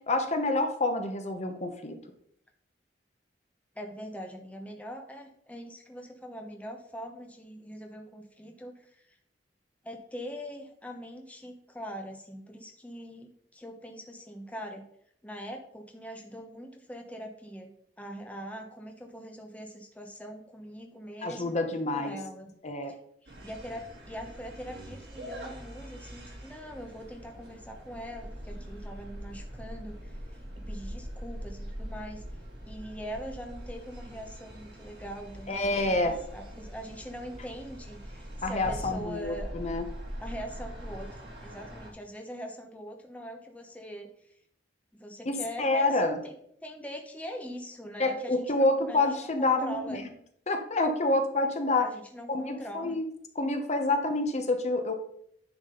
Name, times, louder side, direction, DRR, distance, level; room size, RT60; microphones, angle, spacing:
voice 1, 0.1-2.0 21.2-22.2 22.6-22.9 35.5-36.2 38.4-39.8 45.3-46.2 48.0-50.0 50.5-51.9 52.3-53.0 53.3-54.9, left 2 dB, 40° left, 5 dB, 1.0 m, -28 dB
voice 2, 3.7-9.2 9.8-14.8 15.2-17.7 18.0-22.5 23.2-32.2 32.7-39.6 40.2-44.1 44.9-45.9 46.2-46.3 46.6-49.1 49.4-50.0 51.8-53.0, equal, 10° left, 3 dB, 0.9 m, -42 dB
sound 1, 23.3-41.9, equal, 70° right, 2.9 m, -42 dB
9.9 x 6.1 x 3.9 m, 0.68 s
head